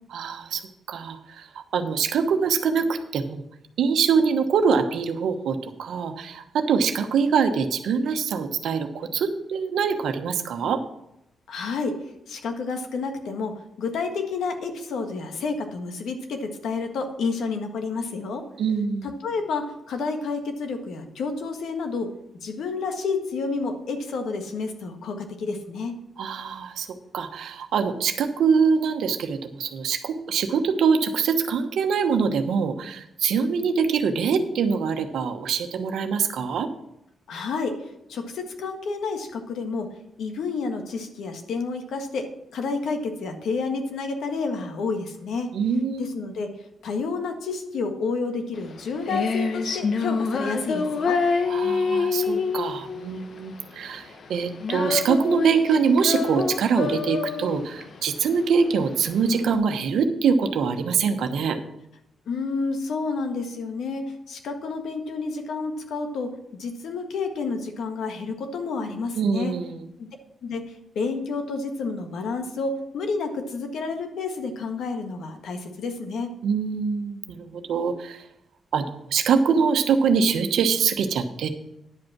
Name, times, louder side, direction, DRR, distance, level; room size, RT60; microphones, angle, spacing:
voice 1, 0.1-0.6 0.9-3.4 3.8-10.8 18.6-19.1 26.2-26.9 27.1-36.7 45.5-46.1 51.5-61.6 69.1-69.8 76.4-78.2 78.7-81.5, right 6 dB, 90° right, 7 dB, 1.0 m, -24 dB
voice 2, 11.5-12.0 12.3-18.5 19.0-22.1 22.4-26.0 37.3-45.5 46.0-46.5 46.8-51.2 62.3-66.3 66.6-69.5 70.0-70.1 70.4-70.6 70.9-76.3, left 4 dB, 80° left, 5 dB, 1.5 m, -30 dB
Female singing, 48.6-59.5, left 4 dB, 50° left, 0.9 m, -27 dB
10.5 x 5.3 x 7.3 m, 0.82 s
wide cardioid pair, 160°, 0 cm